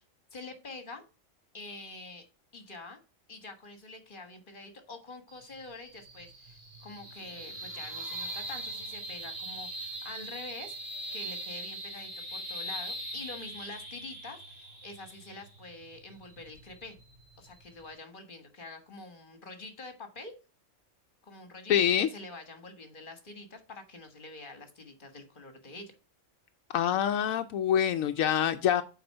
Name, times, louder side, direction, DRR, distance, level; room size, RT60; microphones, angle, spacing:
voice 1, 0.3-1.0 1.5-2.2 2.5-3.0 3.3-17.0 17.4-20.3 21.2-25.9, left 2 dB, 40° left, 7 dB, 1.5 m, -46 dB
sound 1, 5.3-17.9, right 1 dB, 50° right, 2.2 m, -41 dB
voice 2, 21.7-22.1 26.7-28.8, left 9 dB, 85° left, 7 dB, 1.0 m, -25 dB
7.8 x 4.8 x 5.5 m, 0.33 s
omnidirectional pair, 1.4 m